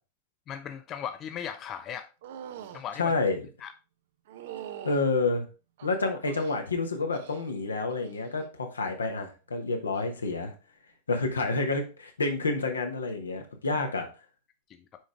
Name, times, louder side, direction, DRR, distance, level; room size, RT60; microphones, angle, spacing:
voice 1, 0.5-2.1 2.7-3.1 3.6-3.7, left 8 dB, 30° left, 0.4 m, -37 dB
sound 1, 2.2-2.8 4.3-5.0 5.8-6.6 7.1-7.5 7.9-8.3 9.9-10.1, right 10 dB, 55° right, 0.6 m, -43 dB
voice 2, 3.0-3.4 4.8-5.5 5.8-10.5 11.1-14.1, left 3 dB, 75° left, 1.2 m, -29 dB
6.2 x 5.0 x 3.5 m
figure-of-eight pair, 90°, 0 cm